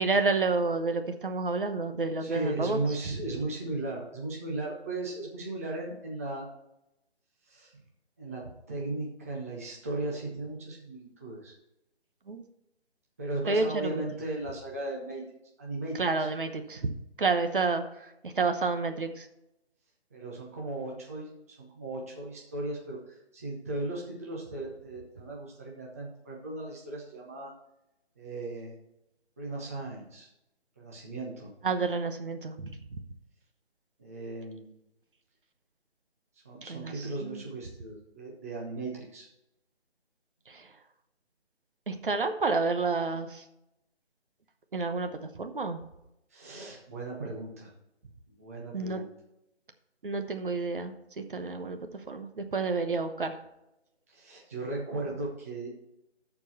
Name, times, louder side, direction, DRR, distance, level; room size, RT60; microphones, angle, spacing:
voice 1, 0.0-2.8 3.1-3.2 12.3-12.4 13.5-14.0 16.0-16.9 17.2-17.8 18.2-19.3 31.6-32.8 36.7-37.4 40.5-40.7 41.9-43.4 44.7-45.8 48.7-49.0 50.0-53.4, right 4 dB, 50° right, 7 dB, 1.0 m, -30 dB
voice 2, 2.2-6.5 7.5-7.7 8.2-11.5 13.2-15.2 15.6-16.3 20.1-27.5 28.2-28.8 29.4-30.3 30.8-31.5 34.0-34.7 36.4-39.3 46.3-47.7 48.4-49.1 54.1-55.7, right 2 dB, 15° right, -3 dB, 0.8 m, -37 dB
13.5 x 4.6 x 4.2 m, 0.85 s
figure-of-eight pair, 165°, 34 cm